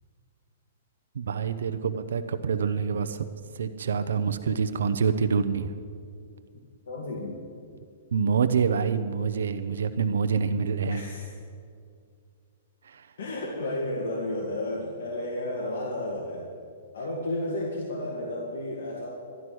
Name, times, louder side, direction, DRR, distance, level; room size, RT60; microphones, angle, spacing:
voice 1, 1.1-3.2 3.5-5.7 8.1-11.0 12.8-13.1, right 6 dB, 85° right, 10 dB, 0.7 m, -26 dB
voice 2, 6.9-7.4 10.9-11.3 13.2-16.5 16.9-19.1, left 1 dB, 80° left, -2 dB, 2.2 m, -32 dB
12.5 x 11.5 x 6.2 m, 2.3 s
hypercardioid pair, 175°, 0 cm